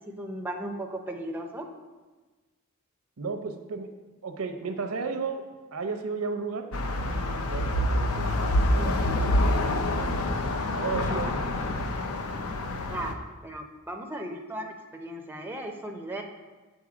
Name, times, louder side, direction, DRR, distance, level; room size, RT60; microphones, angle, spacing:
voice 1, 0.1-1.7 12.9-16.2, right 1 dB, 10° right, 2 dB, 0.5 m, -36 dB
voice 2, 3.2-3.9 4.2-5.5 5.7-8.3 8.7-10.2 10.8-11.4, right 4 dB, 85° right, 6 dB, 0.6 m, -34 dB
sound 1, 6.7-13.1, left 1 dB, 75° left, 0.6 m, -27 dB
7.3 x 3.9 x 4.8 m, 1.2 s
head